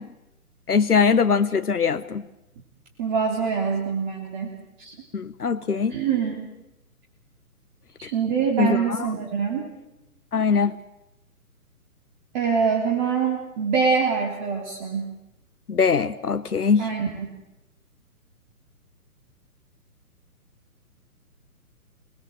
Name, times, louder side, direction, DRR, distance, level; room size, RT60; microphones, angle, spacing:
voice 1, 0.7-2.2 5.1-5.9 8.6-9.1 10.3-10.8 15.7-16.9, left 5 dB, 75° left, 11 dB, 1.1 m, -21 dB
voice 2, 3.0-4.9 5.9-6.5 8.0-9.7 12.3-15.1 16.8-17.3, right 6 dB, 30° right, 0 dB, 3.4 m, -25 dB
26.0 x 20.5 x 7.8 m, 0.94 s
figure-of-eight pair, 135°, 45 cm